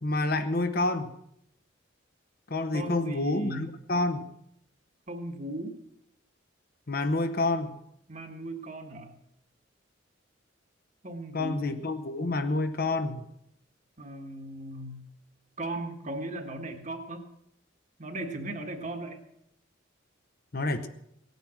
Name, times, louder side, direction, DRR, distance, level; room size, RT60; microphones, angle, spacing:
voice 1, 0.0-1.1 2.5-4.2 6.9-7.8 11.3-13.3 20.5-20.9, left 2 dB, 50° left, 9 dB, 0.9 m, -28 dB
voice 2, 2.7-3.7 5.1-5.8 8.1-9.1 11.0-11.7 14.0-15.0 15.6-17.2 18.0-19.2, right 1 dB, 40° right, 5 dB, 1.5 m, -37 dB
17.0 x 9.3 x 6.2 m, 0.76 s
head